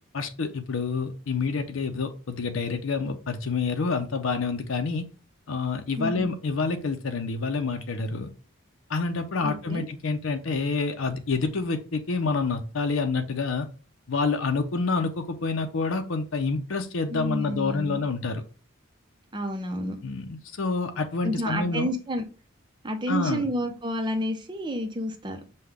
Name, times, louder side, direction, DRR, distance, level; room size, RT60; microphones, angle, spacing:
voice 1, 0.1-5.1 5.5-8.3 8.9-13.7 14.1-18.4 20.0-21.9 23.1-23.4, left 4 dB, 80° left, 7 dB, 0.6 m, -28 dB
voice 2, 6.0-6.3 9.4-9.9 17.1-18.0 19.3-20.0 21.2-22.2 22.8-25.4, equal, 25° right, 6 dB, 0.6 m, -30 dB
5.5 x 2.2 x 3.4 m, 0.35 s
head